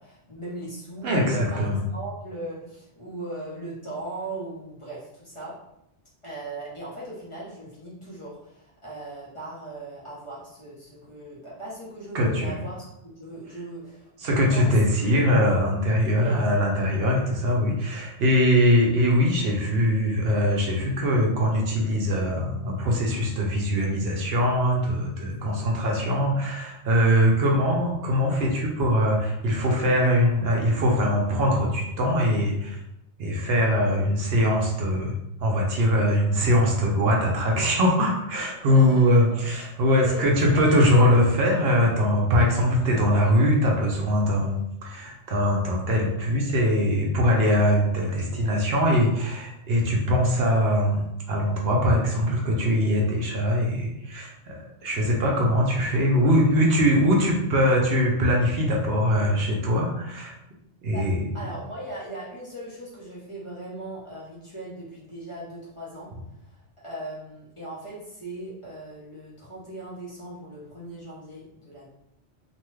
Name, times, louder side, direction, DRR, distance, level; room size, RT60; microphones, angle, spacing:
voice 1, 0.0-5.6 6.2-15.3 16.0-16.7 25.3-25.6 38.7-39.6 40.0-40.8 60.9-61.1 61.3-71.9, right 2 dB, 30° left, -7 dB, 0.8 m, -39 dB
voice 2, 1.0-1.8 12.1-12.6 14.2-32.8 33.2-35.1 35.4-60.3 60.8-61.2, equal, 65° right, -1 dB, 0.8 m, -22 dB
2.7 x 2.2 x 3.1 m, 0.81 s
omnidirectional pair, 1.2 m